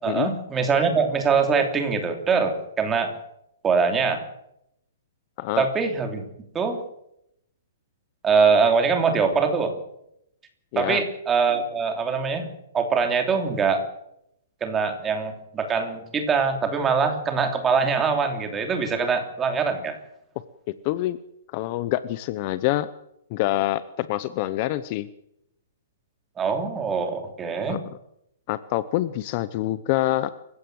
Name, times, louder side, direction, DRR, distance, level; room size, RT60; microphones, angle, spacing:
voice 1, 0.0-3.1 3.6-4.2 5.6-6.2 6.5-6.8 8.2-9.7 10.7-12.4 12.7-13.8 14.6-20.0 26.4-27.8, right 5 dB, 10° right, 5 dB, 3.1 m, -23 dB
voice 2, 20.8-21.2 21.5-22.9 23.3-25.1 27.7-27.8 28.5-30.3, left 15 dB, 30° left, 15 dB, 0.8 m, -26 dB
28.5 x 16.0 x 7.9 m, 0.79 s
hypercardioid pair, 170°, 0 cm